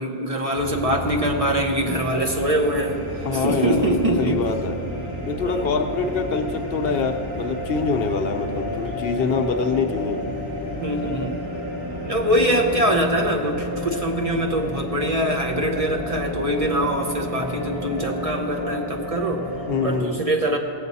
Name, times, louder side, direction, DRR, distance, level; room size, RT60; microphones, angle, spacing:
voice 1, 0.0-3.0 3.3-4.5 5.4-5.6 10.8-11.3 12.1-19.5 19.8-20.6, right 1 dB, 40° right, 1 dB, 0.8 m, -23 dB
sound 1, 0.5-20.0, equal, 20° right, 1.8 m, -31 dB
voice 2, 3.2-3.9 4.2-4.8 5.3-10.2 19.7-20.2, left 4 dB, 70° left, 6 dB, 0.9 m, -25 dB
17.5 x 7.7 x 4.1 m, 2.7 s
omnidirectional pair, 1.1 m